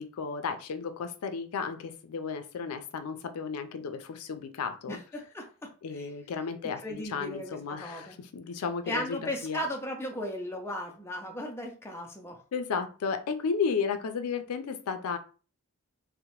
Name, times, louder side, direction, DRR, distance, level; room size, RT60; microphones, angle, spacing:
voice 1, 0.0-1.8 2.1-4.0 4.3-5.0 5.8-8.0 8.3-9.6 12.5-15.2, left 5 dB, 90° left, 8 dB, 0.4 m, -33 dB
voice 2, 4.9-5.7 6.0-6.1 6.8-8.2 8.9-12.4, left 1 dB, 10° left, 1 dB, 0.4 m, -36 dB
2.8 x 2.1 x 2.9 m, 0.37 s
head